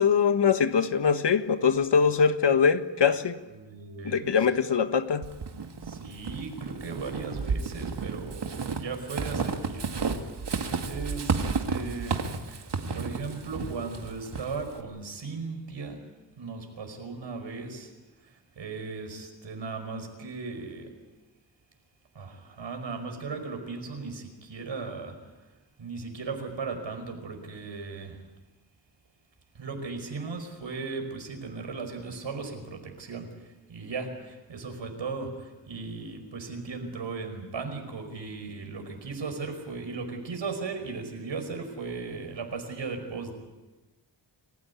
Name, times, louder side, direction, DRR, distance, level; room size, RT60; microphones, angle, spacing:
voice 1, 0.0-3.3 4.0-5.2, left 6 dB, 70° left, 10 dB, 1.5 m, -23 dB
voice 2, 3.5-4.4 5.8-16.0 16.4-17.9 18.2-20.9 22.2-25.2 25.8-28.2 29.6-43.3, right 4 dB, 85° right, 6 dB, 5.2 m, -37 dB
Walk footsteps / Squeak, 5.2-14.8, right 5 dB, 65° right, 2.2 m, -32 dB
28.5 x 15.5 x 9.6 m, 1.2 s
wide cardioid pair, 80°, 44 cm